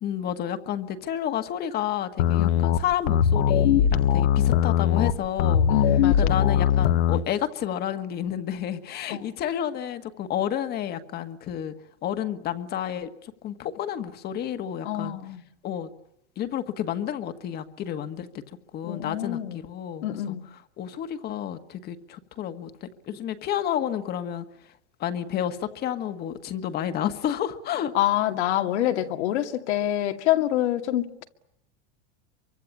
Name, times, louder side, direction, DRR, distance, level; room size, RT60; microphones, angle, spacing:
voice 1, 0.0-5.7 6.2-11.7 12.0-15.2 15.6-15.9 16.4-18.4 18.7-20.4 20.8-24.4 25.0-27.9, left 10 dB, 30° left, 10 dB, 1.7 m, -30 dB
sound 1, 2.2-7.2, left 9 dB, 65° left, 1.5 m, -21 dB
voice 2, 5.7-6.3 9.1-9.3 14.8-15.4 18.9-19.6 20.0-20.4 27.9-31.2, left 13 dB, 80° left, 5 dB, 2.5 m, -26 dB
27.5 x 24.5 x 8.7 m, 0.78 s
supercardioid pair, 160°, 33 cm